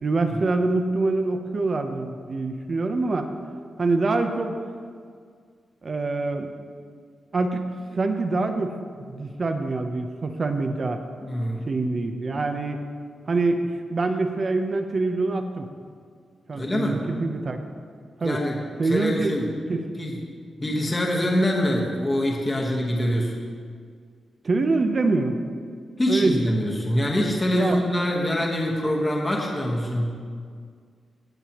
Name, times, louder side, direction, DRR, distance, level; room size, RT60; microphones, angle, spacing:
voice 1, 0.0-3.3 3.8-4.6 5.8-6.5 7.3-7.7 7.9-11.0 11.7-12.8 13.3-15.7 16.5-17.6 18.2-18.4 18.8-19.3 19.7-19.8 24.4-25.4 26.1-26.5 27.5-27.8, right 3 dB, 40° right, 6 dB, 0.7 m, -25 dB
voice 2, 11.2-11.7 16.5-17.0 18.2-19.6 20.0-20.2 20.6-23.3 26.0-30.2, equal, 20° left, -1 dB, 1.3 m, -24 dB
17.0 x 7.5 x 3.0 m, 2.1 s
wide cardioid pair, 125°, 0 cm